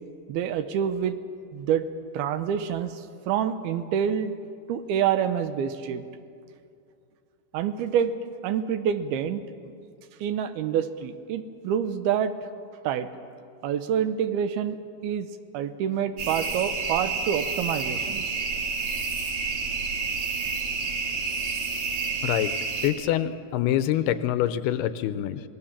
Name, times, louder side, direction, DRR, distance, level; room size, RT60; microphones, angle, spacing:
voice 1, 0.3-1.2 1.5-1.9 2.1-4.3 4.7-6.0 7.5-8.1 8.4-9.4 10.2-12.3 12.8-13.1 13.6-14.8 15.0-15.3 15.5-18.4, right 8 dB, 75° right, 10 dB, 2.7 m, -27 dB
sound 1, 16.2-22.9, right 4 dB, 55° right, 4.0 m, -29 dB
voice 2, 22.8-25.4, left 12 dB, 80° left, 12 dB, 2.6 m, -25 dB
26.5 x 19.5 x 7.3 m, 2.4 s
omnidirectional pair, 4.7 m